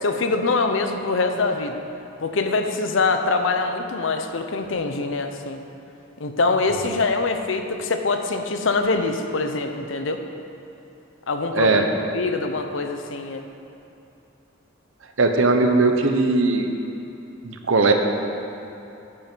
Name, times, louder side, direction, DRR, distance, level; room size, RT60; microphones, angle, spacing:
voice 1, 0.0-1.8 2.2-5.6 6.2-10.2 11.3-11.8 12.1-13.5, left 3 dB, 70° left, 6 dB, 0.7 m, -24 dB
voice 2, 11.5-11.9 15.2-16.7 17.4-17.9, right 3 dB, 75° right, 5 dB, 0.9 m, -18 dB
10.0 x 8.4 x 4.5 m, 2.9 s
head